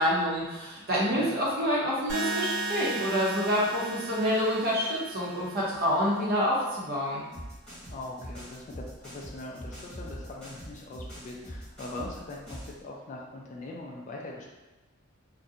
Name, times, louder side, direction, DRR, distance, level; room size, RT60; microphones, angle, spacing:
voice 1, 0.0-7.2, equal, 45° right, -5 dB, 0.7 m, -27 dB
sound 1, 2.1-6.1, right 2 dB, 90° right, 0.8 m, -35 dB
sound 2, 7.3-12.8, equal, 5° left, 0.9 m, -42 dB
voice 2, 7.9-14.5, left 2 dB, 35° left, -2 dB, 0.3 m, -41 dB
2.4 x 2.1 x 2.6 m, 1.1 s
head